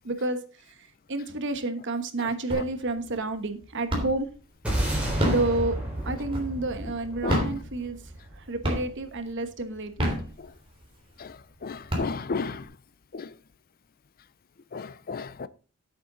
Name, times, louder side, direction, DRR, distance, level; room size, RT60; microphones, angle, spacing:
voice 1, 0.0-0.4 0.8-4.3 5.3-5.8 6.0-8.0 8.4-10.1, right 2 dB, 55° right, 1.2 m, -30 dB
sound 1, 2.5-3.0 3.3-4.4 5.0-6.8 7.2-8.3 8.6-9.2 9.8-10.8 11.3-11.4 11.7-12.6, equal, 25° right, 3.3 m, -29 dB
sound 2, 4.6-9.1, right 1 dB, 5° right, 5.7 m, -31 dB
voice 2, 11.6-12.6 13.1-13.2 14.7-15.5, left 4 dB, 45° left, 0.5 m, -32 dB
10.0 x 8.8 x 3.9 m
head